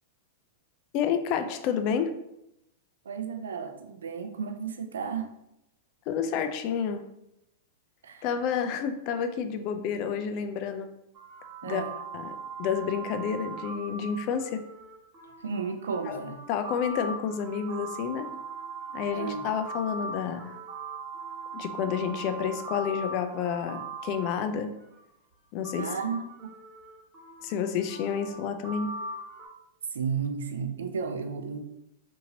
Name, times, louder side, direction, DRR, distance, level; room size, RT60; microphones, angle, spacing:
voice 1, 0.9-2.1 6.1-7.0 8.2-10.9 11.6-11.8 12.1-14.6 16.1-16.2 16.5-18.3 18.9-20.5 21.5-24.7 25.5-25.9 27.4-28.9, left 7 dB, 45° left, 8 dB, 0.4 m, -30 dB
voice 2, 3.1-5.3 8.0-8.2 11.6-11.9 15.4-16.4 19.1-19.4 25.8-26.5 29.9-31.6, right 6 dB, 85° right, 6 dB, 0.4 m, -33 dB
sound 1, 11.1-25.0 25.6-29.5, right 3 dB, 30° right, 1.2 m, -40 dB
2.8 x 2.6 x 2.8 m, 0.83 s
hypercardioid pair, 125°, 0 cm